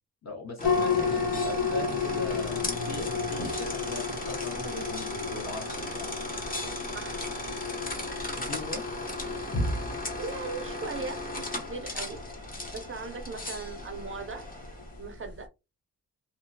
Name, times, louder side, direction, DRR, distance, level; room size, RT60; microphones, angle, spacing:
voice 1, 0.2-6.1 8.3-8.8, left 3 dB, 50° left, 1.1 m, -39 dB
sound 1, 0.6-15.4, left 5 dB, 85° left, 0.7 m, -34 dB
sound 2, 0.6-15.0, left 1 dB, 25° left, 0.7 m, -35 dB
voice 2, 0.7-1.2 6.9-7.2 9.0-9.5 10.2-12.2 12.7-14.5 15.0-15.5, right 4 dB, 40° right, 0.5 m, -39 dB
2.9 x 2.3 x 2.6 m
wide cardioid pair, 120°, 33 cm